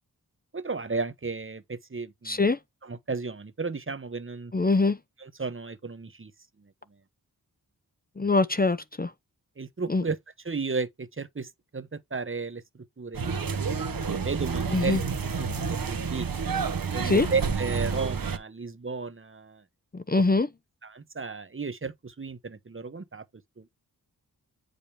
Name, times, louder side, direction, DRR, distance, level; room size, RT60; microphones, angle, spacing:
voice 1, 0.5-2.5 2.8-4.5 5.2-6.3 9.6-10.2 10.4-13.8 14.1-15.0 15.4-16.3 16.9-19.6 20.1-20.2 20.8-23.2 23.6-23.7, right 4 dB, 35° right, 1.0 m, -34 dB
voice 2, 2.3-2.6 4.5-5.0 8.2-9.1 9.9-10.0 14.7-15.0 17.0-17.3 20.1-20.5, left 3 dB, 25° left, 0.7 m, -23 dB
sound 1, 13.1-18.4, right 5 dB, 65° right, 1.2 m, -29 dB
8.6 x 5.1 x 3.3 m
cardioid pair, 60°, 37 cm